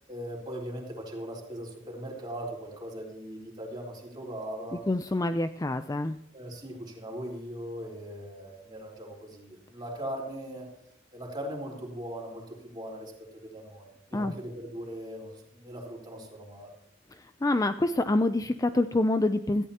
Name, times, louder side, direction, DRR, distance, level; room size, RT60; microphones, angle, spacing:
voice 1, 0.1-4.8 6.3-10.7 11.1-16.7, right 1 dB, 25° right, -2 dB, 3.9 m, -39 dB
voice 2, 4.9-6.2 14.1-14.3 17.4-19.7, left 2 dB, 20° left, 10 dB, 0.4 m, -26 dB
17.5 x 14.5 x 2.9 m, 0.76 s
head